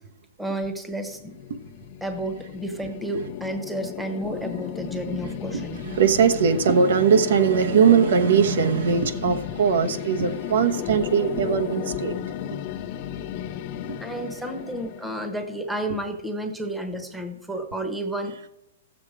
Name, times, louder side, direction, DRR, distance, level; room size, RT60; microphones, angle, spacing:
voice 1, 0.4-1.3 2.0-5.9 10.9-11.1 14.0-18.4, right 1 dB, 5° right, 6 dB, 1.1 m, -31 dB
sound 1, 1.1-16.1, left 10 dB, 45° left, 0.7 m, -34 dB
voice 2, 5.2-12.2, right 6 dB, 75° right, 8 dB, 1.0 m, -20 dB
14.0 x 7.3 x 4.8 m, 0.93 s
hypercardioid pair, 155°, 0 cm